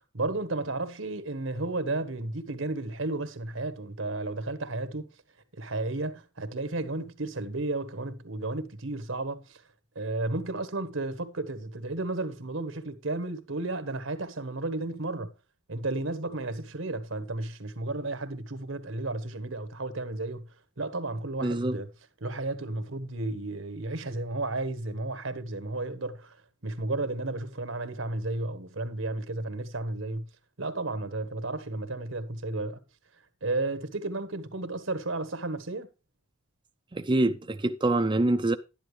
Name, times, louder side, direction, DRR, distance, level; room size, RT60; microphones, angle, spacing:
voice 1, 0.1-5.0 5.6-9.6 9.9-15.3 15.7-20.4 20.8-21.9 22.2-26.4 26.6-30.3 30.6-32.8 33.4-35.9, right 2 dB, 80° right, 1.4 m, -33 dB
voice 2, 21.4-21.8 36.9-38.6, right 2 dB, 25° right, 0.6 m, -25 dB
12.0 x 10.0 x 3.3 m
head